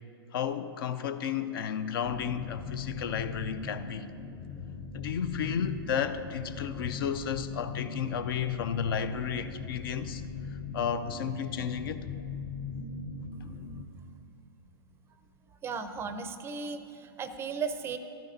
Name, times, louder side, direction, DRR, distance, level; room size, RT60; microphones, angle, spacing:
voice 1, 0.3-4.1 4.9-10.2 10.7-12.1, left 8 dB, 60° left, 0.5 m, -32 dB
sound 1, 2.0-13.8, left 4 dB, 35° left, 0.9 m, -40 dB
voice 2, 15.6-18.0, right 5 dB, 20° right, 0.5 m, -35 dB
14.0 x 12.5 x 2.6 m
hypercardioid pair, 120°, 13 cm